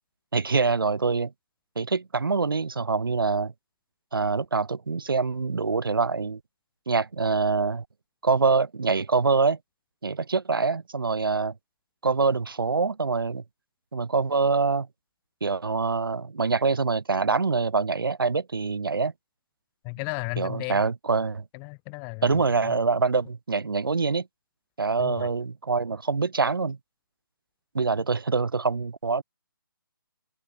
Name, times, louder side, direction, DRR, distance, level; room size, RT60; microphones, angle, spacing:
voice 1, 0.3-1.3 1.8-3.5 4.1-6.4 6.9-7.8 8.2-9.6 10.0-11.5 12.0-13.4 13.9-14.9 15.4-19.1 20.4-21.4 22.2-24.3 24.8-26.8 27.7-29.2, right 4 dB, 75° right, 0.7 m, -25 dB
voice 2, 19.8-20.8 21.5-22.8 25.0-25.3, left 40 dB or more, 10° left, 0.3 m, -35 dB
open air
figure-of-eight pair, 145°, 12 cm